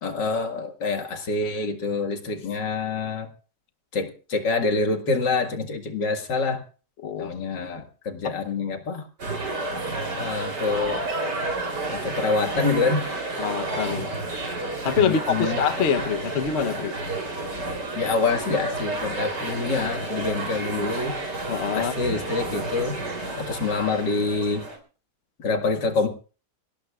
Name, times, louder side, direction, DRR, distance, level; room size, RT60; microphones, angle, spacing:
voice 1, 0.0-3.3 3.9-6.6 7.2-9.0 10.2-11.0 11.9-13.0 15.0-15.6 17.9-21.1 21.7-23.0 23.4-24.6 25.4-26.1, left 4 dB, 85° left, 5 dB, 2.6 m, -26 dB
voice 2, 7.0-7.3 8.2-8.3 13.4-14.1 14.8-17.0 21.5-22.0, left 7 dB, 45° left, 8 dB, 1.1 m, -25 dB
sound 1, 9.2-24.8, right 2 dB, 75° right, 4.1 m, -31 dB
25.0 x 17.5 x 2.4 m, 0.37 s
omnidirectional pair, 1.8 m